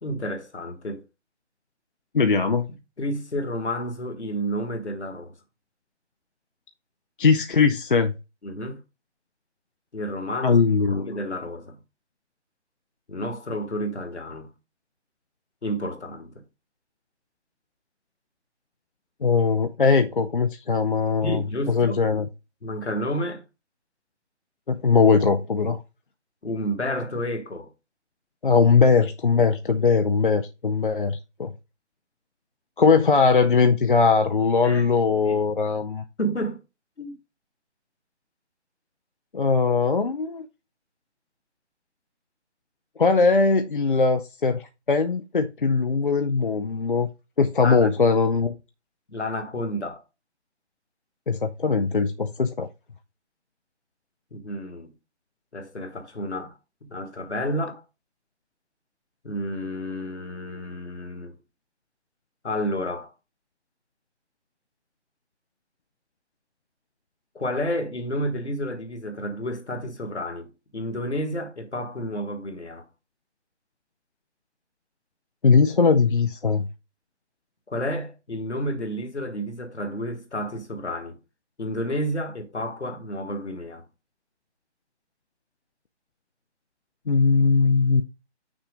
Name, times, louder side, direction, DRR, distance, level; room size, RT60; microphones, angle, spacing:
voice 1, 0.0-1.0 3.0-5.4 8.4-8.8 9.9-10.6 10.9-11.8 13.1-14.5 15.6-16.4 21.2-22.0 22.6-23.4 26.4-27.7 34.6-34.9 35.2-35.4 36.2-36.6 37.0-37.2 47.6-47.9 49.1-50.0 54.3-54.9 55.5-56.5 56.8-57.8 59.2-61.4 62.4-63.1 67.3-72.9 77.7-81.2 81.6-83.8, equal, 70° left, 1.6 m, -30 dB
voice 2, 2.1-2.7 7.2-8.1 10.4-11.1 19.2-21.4 21.7-22.3 24.7-25.8 28.4-31.5 32.8-36.0 39.3-40.5 43.0-47.1 47.4-48.6 51.3-52.7 75.4-76.7 87.1-88.0, left 4 dB, 45° left, 0.5 m, -20 dB
6.2 x 4.2 x 5.0 m
figure-of-eight pair, 150°, 35 cm